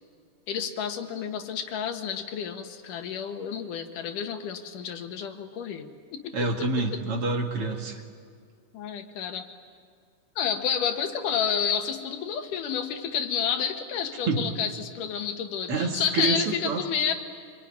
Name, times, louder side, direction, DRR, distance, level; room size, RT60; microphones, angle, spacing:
voice 1, 0.5-6.4 6.9-7.0 8.7-9.5 10.4-17.1, left 7 dB, 85° left, 6 dB, 3.1 m, -30 dB
voice 2, 6.3-8.0 14.3-14.5 15.7-16.8, right 3 dB, 50° right, 3 dB, 2.6 m, -27 dB
26.0 x 22.5 x 9.6 m, 2.1 s
omnidirectional pair, 3.6 m